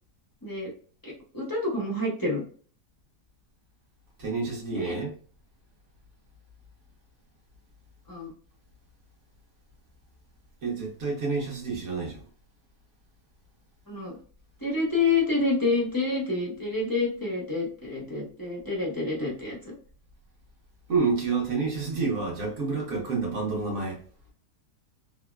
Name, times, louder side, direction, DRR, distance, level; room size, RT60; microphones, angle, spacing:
voice 1, 1.0-2.4 4.7-5.0 8.1-8.3 13.9-14.2 14.6-19.7, left 3 dB, 25° left, 0.4 m, -28 dB
voice 2, 4.2-5.1 10.6-12.2 20.9-24.0, right 4 dB, 50° right, 1.4 m, -29 dB
3.5 x 2.2 x 2.2 m
omnidirectional pair, 1.8 m